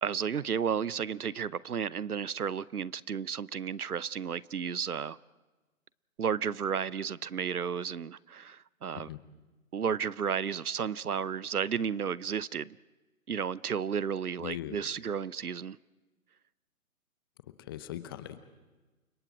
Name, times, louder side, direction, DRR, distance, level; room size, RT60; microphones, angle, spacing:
voice 1, 0.0-5.2 6.2-9.1 9.7-12.8 13.3-15.8, right 7 dB, 85° right, 0.7 m, -33 dB
voice 2, 14.4-14.8 17.6-18.4, left 13 dB, 15° left, 0.7 m, -40 dB
29.5 x 25.0 x 4.9 m
figure-of-eight pair, 135°, 44 cm